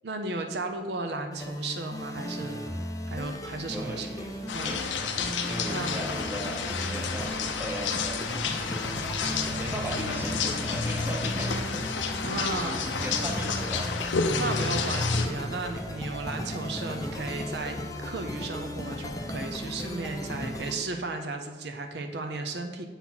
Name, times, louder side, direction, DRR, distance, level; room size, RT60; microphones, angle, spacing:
voice 1, 0.0-2.6 3.1-4.1 4.5-4.7 5.7-6.0 12.2-12.9 14.4-22.9, right 3 dB, 65° right, 5 dB, 0.6 m, -34 dB
sound 1, 1.3-20.8, left 1 dB, 20° left, 0.5 m, -36 dB
voice 2, 3.7-4.8 5.4-8.9 9.2-11.8 12.5-13.8 20.2-20.6, right 1 dB, 10° right, 0 dB, 0.8 m, -38 dB
sound 2, 4.5-15.3, left 5 dB, 85° left, 0.6 m, -30 dB
7.1 x 4.1 x 5.9 m, 1.4 s
head